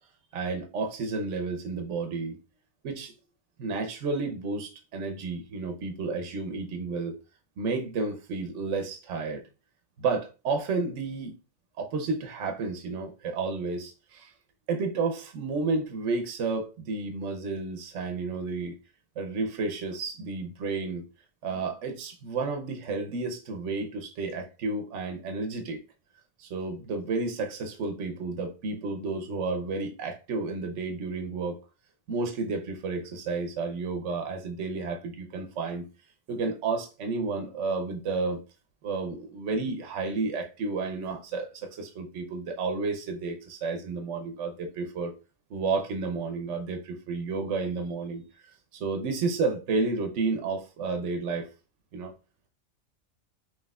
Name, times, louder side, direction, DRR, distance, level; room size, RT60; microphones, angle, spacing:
voice 1, 0.3-2.4 2.8-3.1 3.6-7.2 7.6-9.4 10.0-11.3 11.8-14.3 14.7-18.7 19.2-21.0 21.4-25.8 26.4-31.6 32.1-35.8 36.3-38.4 38.8-45.1 45.5-48.2 48.7-51.5 51.9-52.1, right 4 dB, 75° right, 1.1 m, -31 dB
5.5 x 3.1 x 2.3 m
omnidirectional pair, 1.3 m